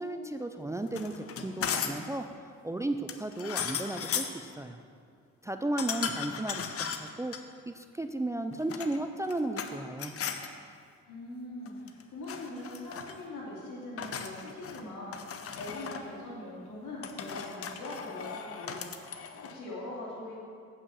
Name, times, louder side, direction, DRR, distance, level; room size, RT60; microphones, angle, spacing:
voice 1, 0.0-4.8 5.4-7.3 7.7-10.1, right 2 dB, 10° right, 7 dB, 0.4 m, -34 dB
sound 1, 0.9-2.1 3.1-4.4 5.8-7.4 8.5-9.7 10.0-10.5 11.7-12.0 12.3-13.2 14.0-14.8 15.1-16.0 17.0-19.6, left 7 dB, 50° left, 0.7 m, -37 dB
voice 2, 11.1-20.4, left 1 dB, 70° left, -7 dB, 2.7 m, -42 dB
8.4 x 5.5 x 7.0 m, 2.3 s
cardioid pair, 90°, 30 cm